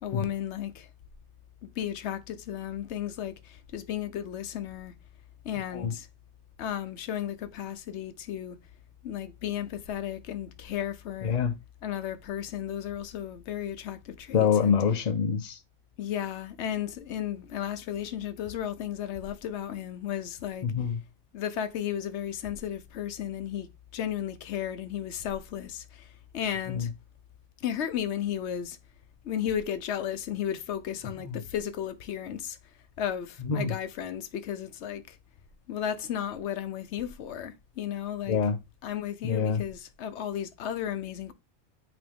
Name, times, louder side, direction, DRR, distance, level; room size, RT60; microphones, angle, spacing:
voice 1, 0.0-0.9 1.6-4.9 5.4-6.1 6.6-8.6 9.0-11.4 11.8-14.8 16.0-20.7 21.3-26.9 27.6-28.8 29.2-32.6 33.0-35.2 35.7-38.4 38.8-41.3, left 10 dB, 70° left, 1.0 m, -34 dB
voice 2, 14.3-15.6 20.6-21.0 26.7-26.9 33.5-33.7 38.3-38.6 39.2-39.6, left 6 dB, 40° left, 0.7 m, -25 dB
8.7 x 3.1 x 3.5 m
omnidirectional pair, 1.2 m